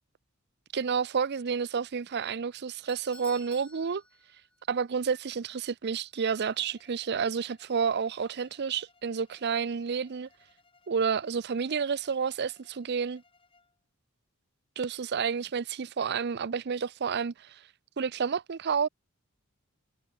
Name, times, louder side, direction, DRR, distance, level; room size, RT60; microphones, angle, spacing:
voice 1, 0.7-4.0 4.7-10.3 10.9-13.2 14.8-17.6 18.0-18.9, right 6 dB, 50° right, 0.5 m, -30 dB
Doorbell, 2.4-4.9 5.2-5.3 6.0-6.1, left 2 dB, 5° left, 0.6 m, -52 dB
Bowed string instrument, 6.3-13.8, left 4 dB, 25° left, 3.8 m, -65 dB
head